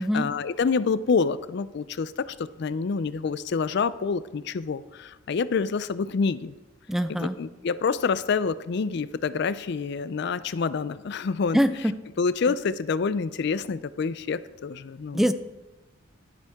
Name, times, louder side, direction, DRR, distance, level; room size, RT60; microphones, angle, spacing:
voice 1, 0.0-6.5 7.1-11.6 12.2-15.2, left 5 dB, 60° left, 16 dB, 0.4 m, -27 dB
voice 2, 6.9-7.4 11.5-11.9 15.1-15.3, equal, ahead, 11 dB, 0.4 m, -23 dB
12.5 x 11.5 x 3.6 m, 1.1 s
head